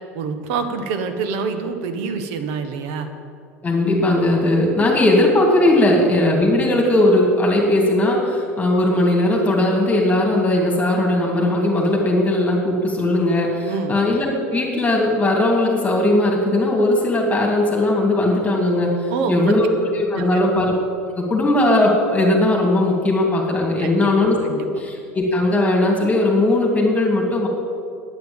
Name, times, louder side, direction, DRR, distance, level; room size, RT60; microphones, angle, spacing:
voice 1, 0.1-3.1 13.7-14.0 19.1-19.5 20.1-20.4 23.8-24.1 24.4-24.7, right 5 dB, 65° right, 8 dB, 1.4 m, -26 dB
voice 2, 3.6-20.7 21.1-24.4 24.8-27.5, left 1 dB, 20° left, -1 dB, 3.0 m, -18 dB
9.7 x 9.4 x 8.9 m, 2.4 s
hypercardioid pair, 85°, 8 cm